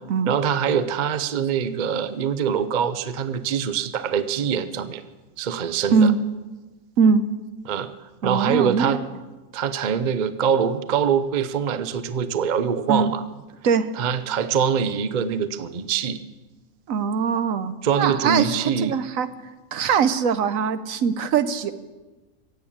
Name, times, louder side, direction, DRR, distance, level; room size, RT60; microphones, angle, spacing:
voice 1, 0.3-5.0 5.4-6.1 7.6-7.9 8.2-9.0 9.5-13.2 14.0-16.2 17.8-19.0, right 7 dB, 45° right, 12 dB, 0.6 m, -24 dB
voice 2, 8.2-9.0 12.9-13.1 13.6-13.9 16.9-19.3 19.7-21.7, right 6 dB, 70° right, 13 dB, 1.2 m, -21 dB
16.0 x 8.5 x 8.6 m, 1.2 s
omnidirectional pair, 1.5 m